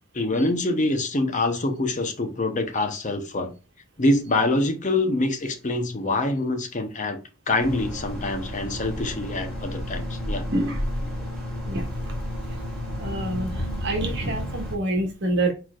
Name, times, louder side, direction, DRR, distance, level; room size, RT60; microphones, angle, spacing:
voice 1, 0.1-3.5 4.0-7.2 7.5-10.5, left 2 dB, 40° left, 0.8 m, -25 dB
sound 1, 7.6-14.8, left 1 dB, 5° left, 2.4 m, -31 dB
voice 2, 13.0-13.5 13.8-15.5, right 1 dB, 60° right, 1.4 m, -26 dB
4.5 x 4.1 x 2.4 m
head